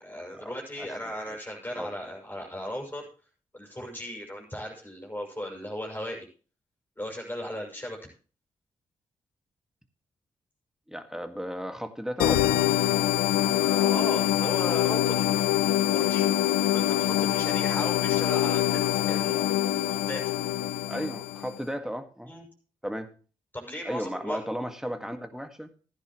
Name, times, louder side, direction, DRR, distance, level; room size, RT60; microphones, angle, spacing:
voice 1, 0.0-3.1 3.5-6.3 7.0-8.0 13.3-16.3 16.7-20.3 22.3-22.4 23.5-24.4, equal, 15° left, -1 dB, 6.2 m, -37 dB
voice 2, 0.8-1.1 1.8-1.9 10.9-12.6 20.9-22.3 22.8-23.1 23.8-25.7, equal, 5° right, 7 dB, 1.9 m, -34 dB
sound 1, 12.2-21.6, left 13 dB, 85° left, 0.6 m, -25 dB
14.5 x 10.5 x 3.2 m, 0.38 s
hypercardioid pair, 40°, 14 cm